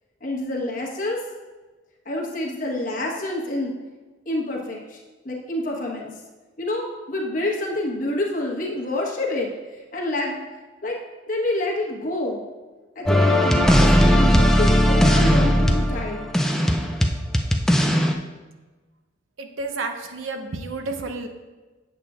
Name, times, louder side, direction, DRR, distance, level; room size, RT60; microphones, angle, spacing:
voice 1, 0.2-1.2 2.0-3.7 4.3-5.0 5.2-6.1 6.6-9.5 9.9-10.4 10.8-11.0 11.3-12.5 12.9-16.3, left 1 dB, 40° left, -1 dB, 1.1 m, -27 dB
sound 1, 13.1-18.1, equal, 5° left, 0.3 m, -18 dB
voice 2, 19.4-21.3, right 3 dB, 85° right, 5 dB, 0.8 m, -31 dB
8.2 x 7.2 x 2.4 m, 1.3 s
head